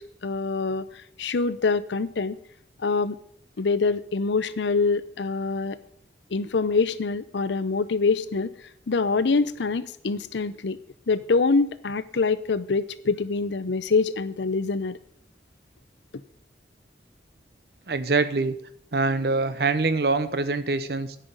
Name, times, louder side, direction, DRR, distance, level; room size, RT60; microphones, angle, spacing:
voice 1, 0.0-2.4 2.8-3.2 3.6-5.8 6.3-8.5 8.9-10.8 11.1-15.0, left 4 dB, 85° left, 15 dB, 0.6 m, -25 dB
voice 2, 17.9-18.6 18.9-21.2, right 3 dB, 65° right, 12 dB, 0.8 m, -24 dB
10.0 x 5.6 x 7.9 m, 0.65 s
head